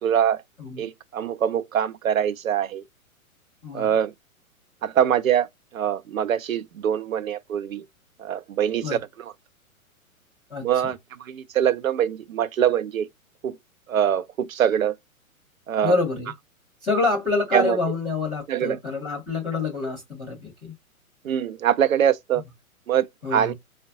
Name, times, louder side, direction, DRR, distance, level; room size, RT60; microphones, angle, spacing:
voice 1, 0.0-0.4 0.8-2.8 3.7-4.1 4.8-5.5 5.7-7.9 8.2-9.3 10.6-13.1 13.4-13.6 13.9-14.9 15.7-16.0 17.5-17.8 18.5-18.8 21.2-22.4 22.9-23.5, right 9 dB, 70° right, 0.5 m, -23 dB
voice 2, 15.8-16.3 16.8-20.7 23.2-23.5, left 3 dB, ahead, 0.4 m, -26 dB
4.3 x 2.1 x 2.6 m
figure-of-eight pair, 115°, 43 cm